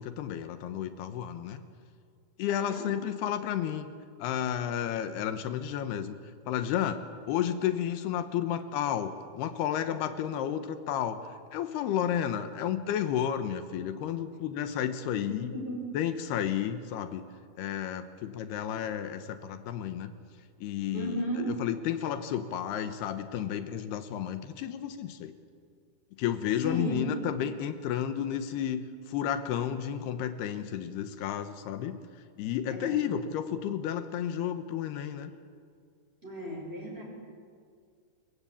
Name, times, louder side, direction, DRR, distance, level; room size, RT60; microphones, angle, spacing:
voice 1, 0.0-1.6 2.4-3.9 4.2-6.2 6.5-7.0 7.3-11.3 11.5-15.5 15.9-17.2 17.6-20.1 20.6-21.2 21.6-25.3 26.2-32.0 32.4-35.3, left 10 dB, 80° left, 9 dB, 3.1 m, -32 dB
voice 2, 2.5-2.9 15.1-15.8 20.9-21.6 26.6-27.2 32.7-33.1 36.2-37.0, right 1 dB, 15° right, 0 dB, 6.0 m, -35 dB
25.5 x 22.5 x 8.5 m, 2.2 s
omnidirectional pair, 4.6 m